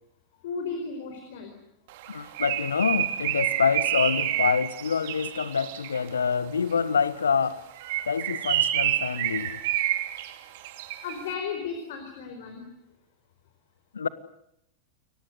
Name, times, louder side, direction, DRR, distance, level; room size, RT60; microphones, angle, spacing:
voice 1, 0.4-1.5 11.0-12.7, left 5 dB, 55° left, 4.6 m, -34 dB
Bird, 2.0-6.1 7.7-11.2, right 13 dB, 50° right, 2.8 m, -28 dB
voice 2, 2.1-7.6 8.1-9.6 13.9-14.1, left 6 dB, 70° left, 1.5 m, -26 dB
29.5 x 22.5 x 8.2 m
figure-of-eight pair, 90°, 0 cm